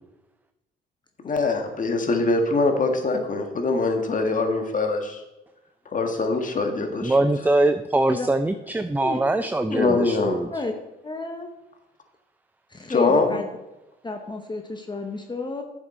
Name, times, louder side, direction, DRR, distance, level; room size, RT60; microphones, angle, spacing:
voice 1, 1.2-5.2 5.9-7.3 9.7-10.4 12.9-13.4, left 3 dB, 40° left, 4 dB, 1.8 m, -23 dB
voice 2, 7.0-10.5, right 2 dB, 10° right, 9 dB, 0.5 m, -22 dB
voice 3, 11.0-11.5 12.7-13.5 14.0-15.6, left 3 dB, 20° left, 4 dB, 1.0 m, -31 dB
10.5 x 7.3 x 4.4 m, 0.99 s
cardioid pair, 90°, 20 cm